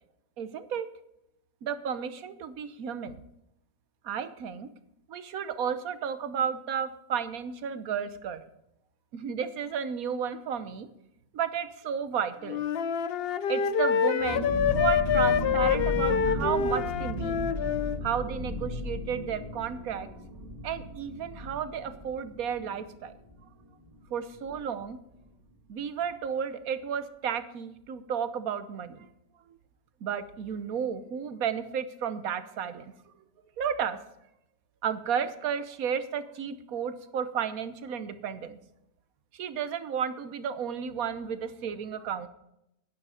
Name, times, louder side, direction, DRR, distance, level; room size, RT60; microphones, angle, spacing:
voice 1, 0.4-0.9 1.6-3.2 4.0-4.7 5.1-8.4 9.1-10.9 11.3-12.6 13.5-17.4 18.0-20.1 20.6-23.1 24.1-25.0 25.7-29.1 30.0-32.9 33.6-34.0 34.8-38.6 39.3-42.3, right 7 dB, 65° right, 12 dB, 1.3 m, -32 dB
Wind instrument woodwind instrument, 12.4-18.0, left 7 dB, 75° left, 0.5 m, -26 dB
sound 1, 14.2-23.6 23.9-24.0 24.3-24.6, left 1 dB, 30° right, 2.8 m, -35 dB
11.0 x 10.0 x 5.0 m, 0.83 s
omnidirectional pair, 1.7 m